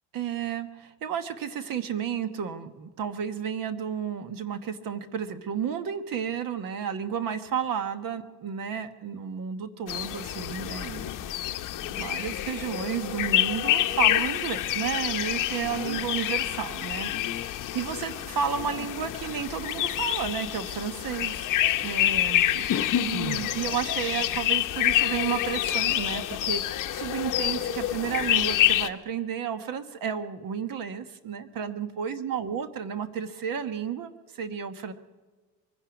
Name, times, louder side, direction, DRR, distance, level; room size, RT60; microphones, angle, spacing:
voice 1, 0.1-11.3 11.9-21.4 21.8-22.7 23.0-34.9, right 8 dB, 55° right, 10 dB, 1.3 m, -32 dB
sound 1, 9.9-28.9, left 13 dB, 50° left, 0.9 m, -27 dB
23.5 x 10.5 x 5.1 m, 1.3 s
cardioid pair, 150°, 40 cm